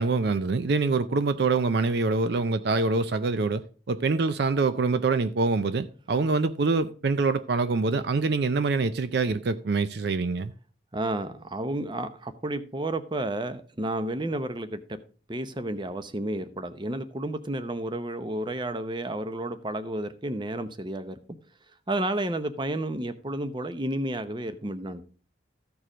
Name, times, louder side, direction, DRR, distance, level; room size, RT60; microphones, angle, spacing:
voice 1, 0.0-10.5, right 3 dB, 55° right, 0.5 m, -25 dB
voice 2, 10.9-15.0 15.3-21.2 21.9-25.0, right 1 dB, 25° right, 0.7 m, -31 dB
14.0 x 4.7 x 4.9 m
head